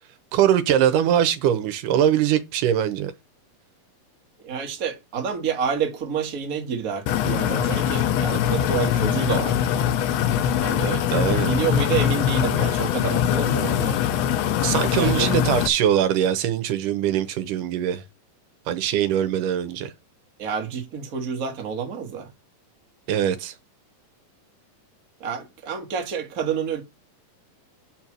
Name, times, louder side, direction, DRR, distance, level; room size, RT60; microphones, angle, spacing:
voice 1, 0.3-3.1 11.1-11.5 14.6-18.0 18.7-19.9 23.1-23.5, right 10 dB, 80° right, 2.3 m, -22 dB
voice 2, 4.4-9.6 10.6-11.2 11.4-14.0 15.0-15.3 20.4-22.3 25.2-26.8, right 6 dB, 40° right, 1.2 m, -28 dB
sound 1, 7.1-15.7, left 9 dB, 85° left, 1.5 m, -22 dB
8.8 x 4.5 x 6.0 m
omnidirectional pair, 3.9 m